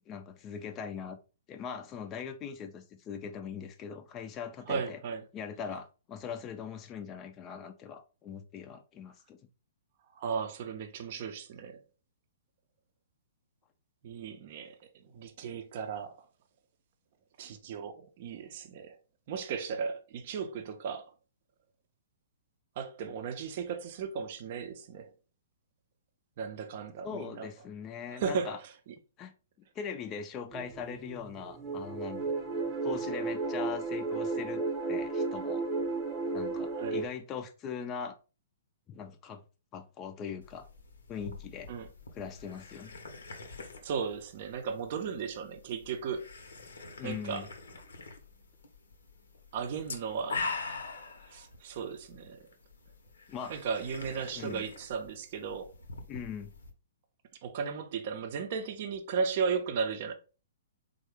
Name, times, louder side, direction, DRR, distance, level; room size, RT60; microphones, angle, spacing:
voice 1, 0.1-1.2 1.5-5.0 5.3-9.4 27.0-28.6 29.2-29.3 29.8-32.2 32.8-35.6 36.3-38.2 38.9-39.4 39.7-40.7 41.1-41.7 42.1-43.0 47.0-47.5 53.3-53.6 54.4-54.6 56.1-56.5, left 7 dB, 25° left, 0.3 m, -41 dB
voice 2, 4.7-5.2 10.2-11.8 14.0-14.8 15.1-16.2 17.4-19.0 19.3-21.1 22.8-25.1 26.4-27.5 28.1-28.6 36.8-37.0 41.7-41.9 43.8-46.3 47.0-47.5 49.5-50.4 51.3-52.4 53.5-55.7 57.4-60.1, right 6 dB, 50° right, 0.5 m, -35 dB
sound 1, 30.5-37.1, right 3 dB, 5° right, 0.8 m, -33 dB
sound 2, 40.4-56.7, left 4 dB, 80° left, 0.7 m, -44 dB
3.6 x 2.1 x 3.2 m
hypercardioid pair, 130°, 0 cm